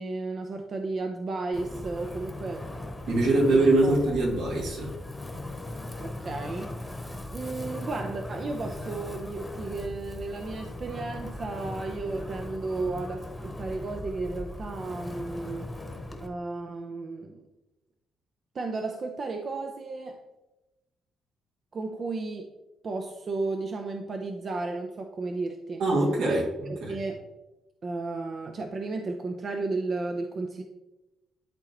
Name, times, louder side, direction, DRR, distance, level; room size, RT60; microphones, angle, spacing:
voice 1, 0.0-2.6 3.3-4.0 6.0-6.7 7.3-15.7 16.2-17.4 18.5-20.2 21.7-22.5 22.8-25.8 26.2-26.4 26.7-27.2 27.8-30.6, right 3 dB, 45° right, 4 dB, 0.6 m, -33 dB
Wind, 1.5-16.3, left 1 dB, 10° left, 1.1 m, -39 dB
voice 2, 3.1-4.9 25.8-26.4 26.8-26.9, right 2 dB, 80° right, -2 dB, 2.3 m, -23 dB
11.5 x 3.8 x 3.0 m, 1.0 s
cardioid pair, 90°, 0 cm